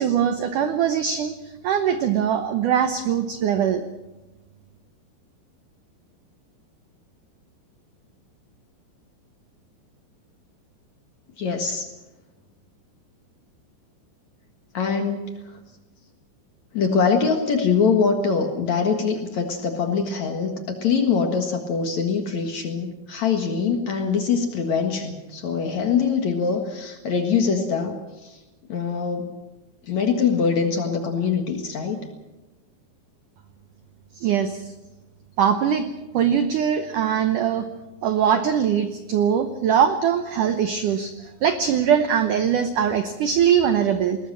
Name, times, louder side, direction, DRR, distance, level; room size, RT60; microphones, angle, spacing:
voice 1, 0.0-3.8 34.2-34.7 35.4-35.9 36.1-37.7 38.0-44.2, right 8 dB, 85° right, 9 dB, 1.8 m, -22 dB
voice 2, 11.4-11.9 14.7-15.3 16.7-28.0 28.2-28.4 28.7-29.3 29.9-32.0, left 5 dB, 55° left, 4 dB, 2.3 m, -23 dB
20.5 x 20.0 x 7.5 m, 1.1 s
omnidirectional pair, 5.1 m